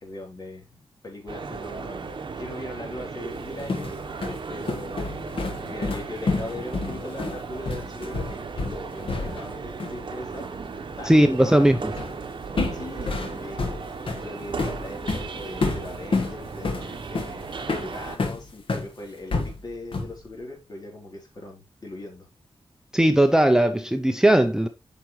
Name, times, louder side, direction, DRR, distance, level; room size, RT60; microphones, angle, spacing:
voice 1, 0.0-2.1 2.4-4.1 4.5-8.3 8.5-10.5 11.0-11.9 12.7-22.3, left 1 dB, 45° left, 3.4 m, -40 dB
sound 1, 1.3-18.2, right 4 dB, 55° right, 1.0 m, -36 dB
sound 2, 3.3-9.6 9.8-10.0 12.0-12.2 12.6-18.9 19.3-20.2, left 3 dB, 70° left, 1.5 m, -29 dB
voice 2, 11.1-11.8 22.9-24.7, right 1 dB, 5° right, 0.6 m, -18 dB
8.9 x 5.9 x 3.1 m
wide cardioid pair, 120°, 9 cm